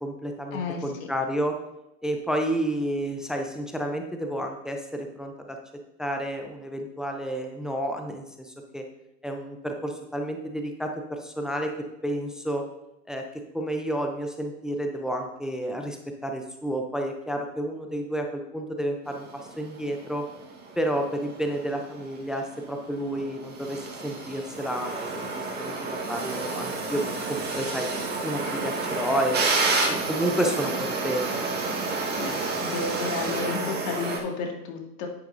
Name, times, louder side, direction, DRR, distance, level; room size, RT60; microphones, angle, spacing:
voice 1, 0.0-1.6 2.0-5.6 6.0-8.8 9.2-11.7 12.0-12.6 13.1-19.3 19.6-20.2 20.8-27.0 27.3-27.9 28.2-29.6 30.1-31.3, right 1 dB, ahead, 3 dB, 0.4 m, -30 dB
voice 2, 0.5-1.1 32.1-35.1, left 4 dB, 45° left, 2 dB, 2.0 m, -32 dB
sound 1, 19.1-34.2, right 3 dB, 20° right, 1.6 m, -30 dB
10.0 x 8.5 x 2.6 m, 0.87 s
hypercardioid pair, 110°, 47 cm